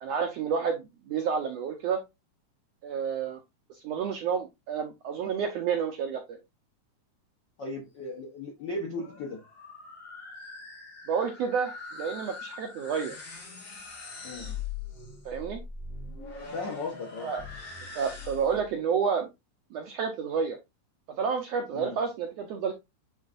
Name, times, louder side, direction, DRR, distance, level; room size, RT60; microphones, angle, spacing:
voice 1, 0.0-2.0 2.8-3.4 3.8-6.4 11.1-13.2 15.2-15.6 17.2-17.4 17.9-19.3 19.7-20.6 21.2-22.7, right 6 dB, 70° right, 1.6 m, -30 dB
voice 2, 7.6-9.4 14.2-14.5 16.5-17.3 21.7-22.0, left 2 dB, 60° left, 1.1 m, -36 dB
sound 1, 8.6-18.7, left 4 dB, 40° left, 2.3 m, -42 dB
9.5 x 3.9 x 2.6 m
omnidirectional pair, 3.7 m